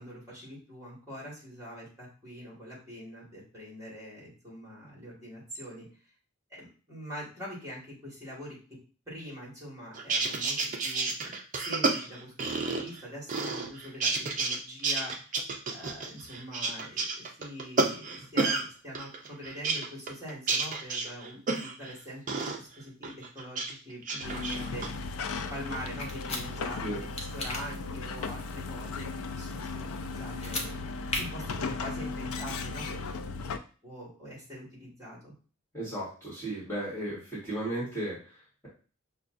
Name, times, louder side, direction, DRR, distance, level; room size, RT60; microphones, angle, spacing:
voice 1, 0.0-5.9 6.5-8.6 9.1-14.1 14.4-15.4 15.7-27.1 27.3-30.8 31.2-33.0 33.8-35.3, equal, 15° right, -7 dB, 1.8 m, -44 dB
sound 1, 9.9-13.0 13.3-14.6 14.8-18.6 18.9-21.9 22.3-22.6 23.0-23.7 24.0-24.9, right 3 dB, 35° right, 0.5 m, -30 dB
sound 2, 24.2-33.6, left 4 dB, 80° left, 0.4 m, -36 dB
sound 3, 26.0-26.4 27.2-27.6 30.3-30.7 31.1-31.2, left 2 dB, 30° left, 0.6 m, -33 dB
voice 2, 35.7-38.7, right 1 dB, 10° left, -9 dB, 1.5 m, -35 dB
5.6 x 2.2 x 2.5 m, 0.37 s
head